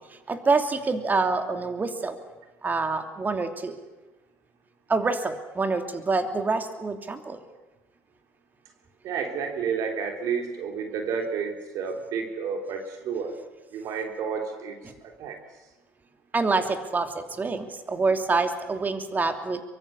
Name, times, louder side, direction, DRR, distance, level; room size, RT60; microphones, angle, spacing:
voice 1, 0.3-2.2 2.6-3.8 4.9-7.4 16.3-19.6, right 3 dB, 25° right, 6 dB, 3.0 m, -26 dB
voice 2, 9.0-13.4 13.7-15.4, right 6 dB, 60° right, 3 dB, 3.7 m, -31 dB
24.0 x 23.5 x 7.1 m, 1.1 s
hypercardioid pair, 65°, 7 cm